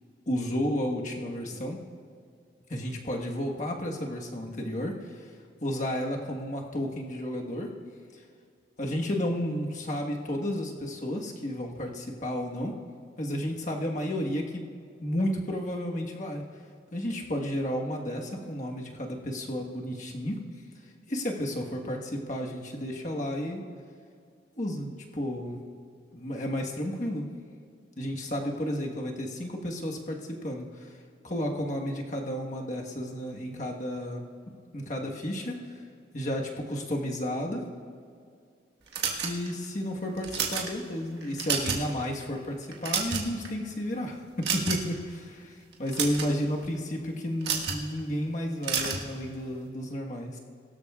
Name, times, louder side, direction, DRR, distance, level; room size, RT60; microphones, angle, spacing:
voice 1, 0.3-1.8 2.7-5.1 5.6-7.7 8.8-12.7 13.2-14.7 15.0-16.4 16.9-20.4 21.1-23.6 24.5-25.6 26.1-27.3 28.0-30.9 31.2-34.3 34.7-35.6 36.1-37.6 39.2-50.4, equal, 40° left, 0 dB, 1.3 m, -32 dB
sound 1, 38.9-39.6 40.2-40.7 41.2-41.9 42.2-42.4 42.7-43.5 44.4-45.0 45.7-46.3 47.4-47.8 48.6-49.1, right 6 dB, 65° right, 1.5 m, -29 dB
21.5 x 13.0 x 2.4 m, 2.2 s
head